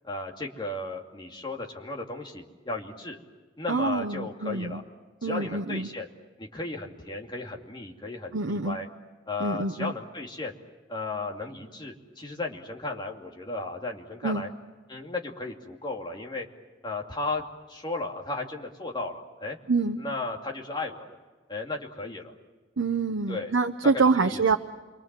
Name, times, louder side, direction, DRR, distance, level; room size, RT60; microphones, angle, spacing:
voice 1, 0.0-3.2 3.6-4.8 5.2-6.1 6.4-8.9 9.3-10.5 10.9-14.5 14.9-16.5 16.8-17.4 17.7-19.6 20.0-21.2 21.5-22.3 23.3-23.5 24.2-24.6, left 2 dB, 25° left, 0 dB, 2.6 m, -35 dB
voice 2, 3.7-4.8 5.2-5.9 8.3-8.8 9.4-9.9 14.2-14.4 19.7-20.0 22.8-24.6, right 4 dB, 85° right, 6 dB, 0.9 m, -26 dB
28.0 x 23.5 x 7.6 m, 1.3 s
head